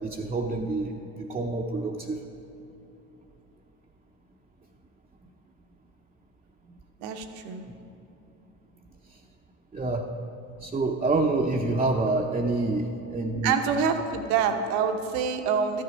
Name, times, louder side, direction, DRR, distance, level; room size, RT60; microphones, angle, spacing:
voice 1, 0.0-2.2 7.7-7.8 9.7-10.1 10.6-13.5, right 2 dB, 15° right, 0 dB, 0.7 m, -27 dB
voice 2, 7.0-7.7 13.4-15.8, right 6 dB, 70° right, 6 dB, 1.0 m, -26 dB
13.0 x 6.6 x 5.1 m, 2.9 s
hypercardioid pair, 65°, 38 cm